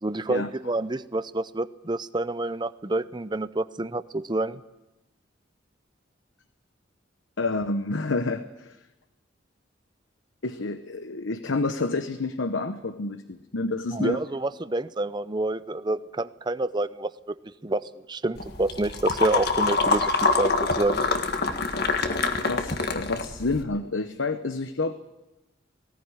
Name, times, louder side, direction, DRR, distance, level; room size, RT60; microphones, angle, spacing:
voice 1, 0.0-4.6 13.9-17.3 17.6-20.1 20.4-21.1, right 2 dB, 25° right, 14 dB, 0.7 m, -28 dB
voice 2, 7.4-8.8 10.4-14.2 20.6-20.7 22.5-24.9, left 3 dB, 80° left, 10 dB, 1.0 m, -29 dB
sound 1, 18.3-23.6, left 3 dB, 55° left, 1.6 m, -25 dB
19.0 x 17.5 x 9.7 m, 1.0 s
head